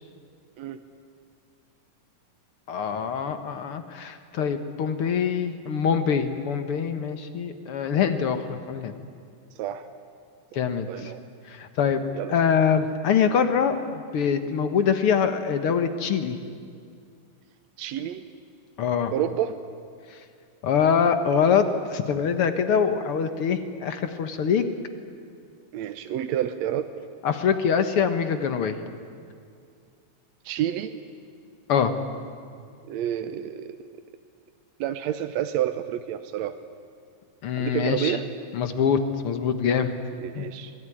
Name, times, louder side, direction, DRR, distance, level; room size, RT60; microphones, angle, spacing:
voice 1, 2.7-8.9 10.5-11.1 11.5-12.0 12.3-13.8 14.1-16.4 18.8-19.1 20.6-24.7 27.2-28.8 31.7-31.9 37.4-38.2 38.5-39.9 40.3-40.5, left 7 dB, 60° left, 9 dB, 1.6 m, -24 dB
voice 2, 10.9-11.2 12.1-12.3 17.8-18.3 19.1-19.6 25.7-26.9 30.4-31.0 32.9-33.9 34.8-36.6 37.6-38.3 40.2-40.7, right 11 dB, 75° right, 8 dB, 1.7 m, -29 dB
26.5 x 19.5 x 10.0 m, 2.3 s
omnidirectional pair, 3.9 m